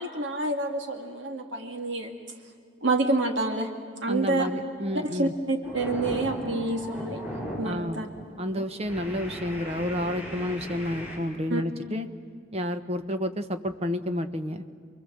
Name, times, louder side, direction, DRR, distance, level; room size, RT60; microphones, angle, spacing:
voice 1, 0.0-2.1 2.8-3.7 4.0-4.5 5.0-7.2 7.6-8.1 8.6-8.7 11.5-11.6, right 2 dB, 70° right, 4 dB, 2.1 m, -28 dB
voice 2, 4.1-5.3 7.6-8.1 8.4-12.1 12.5-14.7, left 1 dB, 35° right, 8 dB, 1.2 m, -30 dB
sound 1, 4.7-5.0 5.4-7.8 8.1-8.4 8.8-11.2, equal, 5° right, 7.1 m, -37 dB
29.0 x 22.5 x 7.6 m, 2.1 s
head